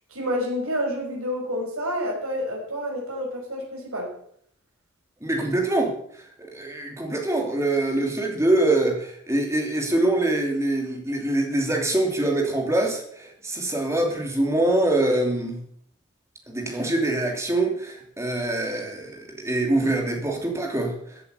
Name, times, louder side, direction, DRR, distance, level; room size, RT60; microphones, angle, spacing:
voice 1, 0.1-4.1, equal, 80° right, 0 dB, 5.8 m, -29 dB
voice 2, 5.2-5.9 6.5-15.6 16.5-20.9, right 2 dB, 15° right, 2 dB, 2.8 m, -24 dB
15.0 x 8.3 x 8.2 m, 0.64 s
head